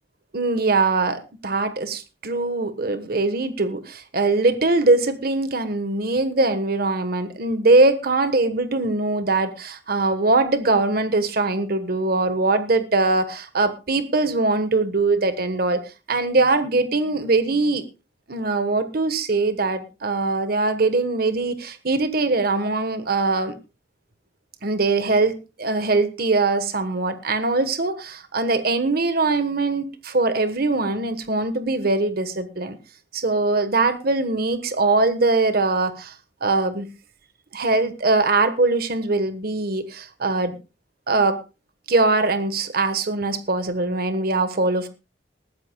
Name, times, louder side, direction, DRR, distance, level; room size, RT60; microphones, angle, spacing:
voice 1, 0.3-17.8 18.3-23.6 24.6-32.8 33.1-36.1 36.4-36.9 37.5-40.6 41.1-41.4 41.9-44.9, right 3 dB, 60° right, 11 dB, 1.3 m, -22 dB
20.0 x 14.0 x 2.3 m, 0.28 s
head